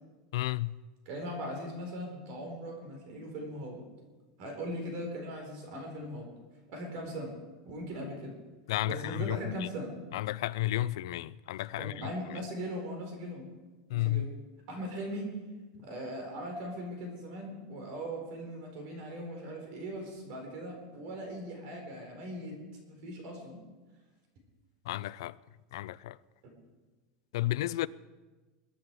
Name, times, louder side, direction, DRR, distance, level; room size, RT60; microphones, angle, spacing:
voice 1, 0.3-0.8 8.7-9.7 10.1-11.9 13.9-14.3 24.9-25.3 25.7-26.2 27.3-27.9, left 15 dB, 80° left, 0.4 m, -32 dB
voice 2, 1.0-3.8 4.4-6.3 6.7-7.3 7.6-8.4 8.9-9.9 11.8-13.5 13.9-14.3 14.7-15.3 15.8-22.5 22.9-23.6, equal, 50° right, 4.4 m, -39 dB
22.0 x 10.0 x 4.7 m
supercardioid pair, 155°, 3 cm